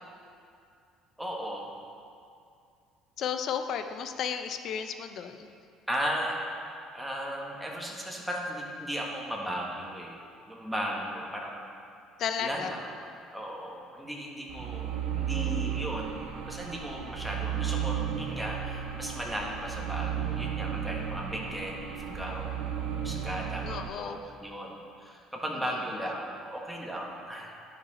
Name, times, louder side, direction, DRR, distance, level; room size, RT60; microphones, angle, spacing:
voice 1, 1.2-1.7 5.9-6.4 6.9-10.2 10.5-11.6 12.4-22.5 23.0-27.5, equal, 5° right, -2 dB, 1.4 m, -36 dB
voice 2, 3.2-5.5 12.2-12.7 23.6-24.2, left 7 dB, 60° left, 8 dB, 0.5 m, -33 dB
sound 1, 14.5-23.9, right 9 dB, 80° right, 0.6 m, -34 dB
10.0 x 5.2 x 4.2 m, 2.5 s
supercardioid pair, 85°, 0 cm